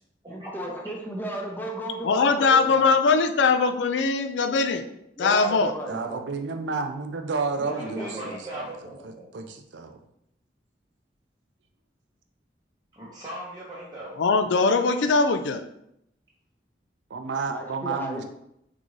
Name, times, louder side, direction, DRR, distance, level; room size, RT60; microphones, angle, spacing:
voice 1, 0.3-3.2 5.2-6.3 7.7-8.3 17.5-18.2, right 1 dB, 10° left, 0 dB, 0.6 m, -34 dB
voice 2, 2.0-4.9 5.2-5.7 14.2-15.7, left 4 dB, 85° left, 10 dB, 0.4 m, -21 dB
voice 3, 5.9-8.3 9.0-10.0 17.1-18.2, right 4 dB, 85° right, 6 dB, 0.5 m, -31 dB
voice 4, 7.6-9.3 12.9-14.2, right 1 dB, 25° right, -7 dB, 0.7 m, -39 dB
3.9 x 3.6 x 3.1 m, 0.77 s
head